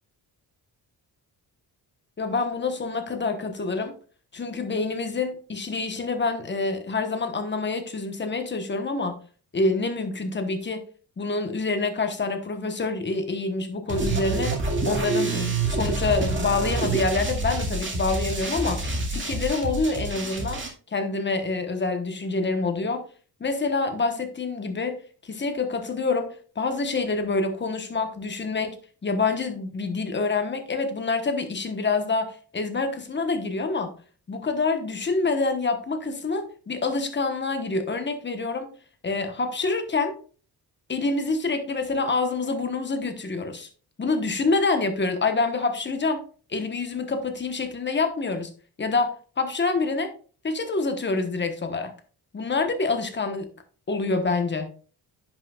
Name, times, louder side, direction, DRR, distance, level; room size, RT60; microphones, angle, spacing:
voice 1, 2.2-4.0 4.3-9.2 9.5-10.8 11.2-14.6 14.8-20.6 20.9-23.1 23.4-28.8 29.0-34.0 34.3-38.7 39.0-40.2 40.9-43.7 44.0-46.2 46.5-48.5 48.8-50.1 50.4-51.9 52.3-53.5 53.9-54.7, left 3 dB, 25° left, 1.1 m, -27 dB
sound 1, 13.9-20.7, right 2 dB, 30° right, 2.0 m, -27 dB
10.0 x 6.1 x 2.4 m
cardioid pair, 125°, 40 cm